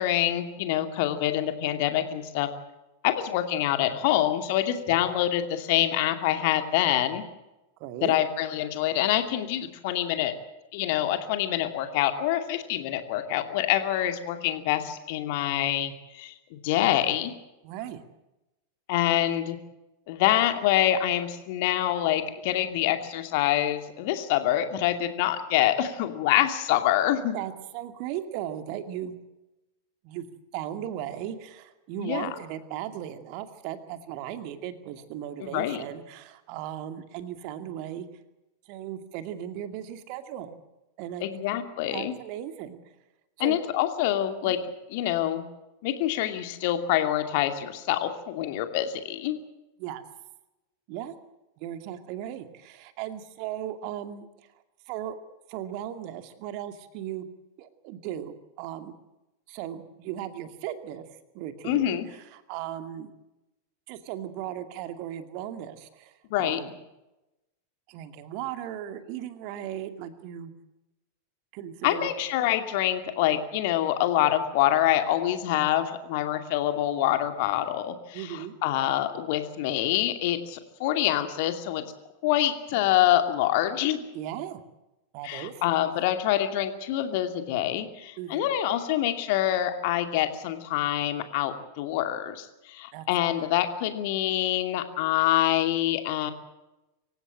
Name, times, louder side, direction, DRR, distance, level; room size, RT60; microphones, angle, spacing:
voice 1, 0.0-2.5 3.0-7.2 8.0-10.3 10.7-17.3 18.9-19.6 20.1-27.4 32.0-32.3 35.4-35.8 41.2-42.1 43.4-44.6 44.9-45.4 45.8-49.4 61.6-62.1 66.3-66.6 71.8-81.8 82.2-84.1 85.2-96.3, left 12 dB, 50° left, 7 dB, 2.5 m, -26 dB
voice 2, 7.8-8.2 17.6-18.0 27.3-29.2 30.0-30.3 30.5-38.1 38.7-40.6 41.0-41.5 41.9-42.9 43.4-43.6 44.4-44.6 49.8-50.0 50.9-51.1 51.6-54.3 54.9-55.2 55.5-57.3 57.6-58.9 59.5-61.1 61.3-63.1 63.9-66.8 67.9-70.5 71.5-72.1 78.1-78.5 84.1-84.6 85.1-85.6 88.2-88.5 92.9-93.4, right 11 dB, 45° right, 8 dB, 2.3 m, -37 dB
25.5 x 16.0 x 7.9 m, 0.98 s
figure-of-eight pair, 90°, 0 cm